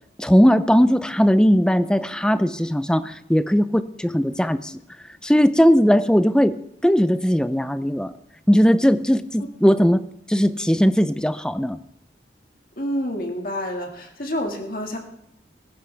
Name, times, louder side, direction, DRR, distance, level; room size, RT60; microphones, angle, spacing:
voice 1, 0.2-4.8 5.2-6.6 6.8-8.1 8.5-10.0 10.3-11.8, equal, 5° left, 12 dB, 0.5 m, -18 dB
voice 2, 12.8-15.0, equal, 50° left, 2 dB, 2.1 m, -28 dB
18.5 x 15.0 x 3.4 m, 0.79 s
head